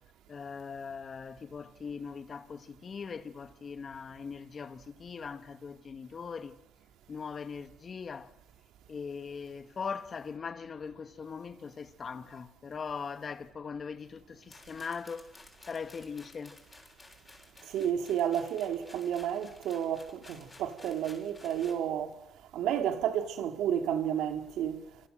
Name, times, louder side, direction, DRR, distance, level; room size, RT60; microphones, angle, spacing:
voice 1, 0.3-6.6 7.1-8.3 8.9-15.3 15.7-16.6, left 5 dB, 45° left, 1.8 m, -40 dB
sound 1, 14.5-21.8, left 2 dB, 20° left, 6.9 m, -55 dB
voice 2, 17.7-22.1 22.5-24.8, right 9 dB, 85° right, 2.2 m, -31 dB
27.0 x 27.0 x 7.7 m
cardioid pair, 90°, 0 cm